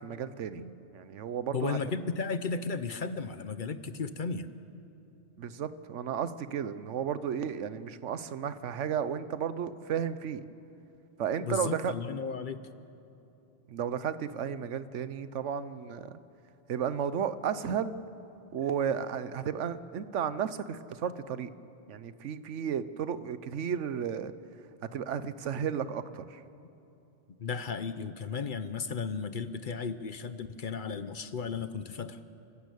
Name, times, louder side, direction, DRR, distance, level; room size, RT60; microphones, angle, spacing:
voice 1, 0.0-0.6 0.9-1.8 5.4-10.4 11.2-11.9 13.7-16.1 16.7-18.0 18.5-21.5 21.9-24.3 24.9-26.4, right 8 dB, 85° right, 14 dB, 1.1 m, -33 dB
voice 2, 1.5-4.5 11.4-12.6 27.4-32.2, left 5 dB, 50° left, 12 dB, 0.8 m, -34 dB
28.5 x 12.5 x 8.4 m, 2.8 s
omnidirectional pair, 1.2 m